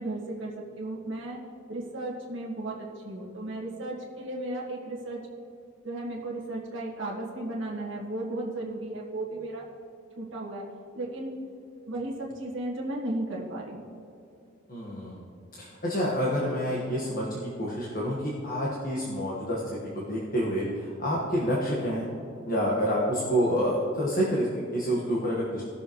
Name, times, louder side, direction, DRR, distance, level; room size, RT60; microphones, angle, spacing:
voice 1, 0.0-1.4 1.7-5.2 5.8-9.6 10.2-10.7 10.9-11.4 11.9-13.8, right 2 dB, 70° right, -5 dB, 1.6 m, -35 dB
voice 2, 14.7-15.2 15.6-22.1 22.5-25.6, equal, 45° left, -5 dB, 1.4 m, -28 dB
18.5 x 6.9 x 3.1 m, 2.6 s
head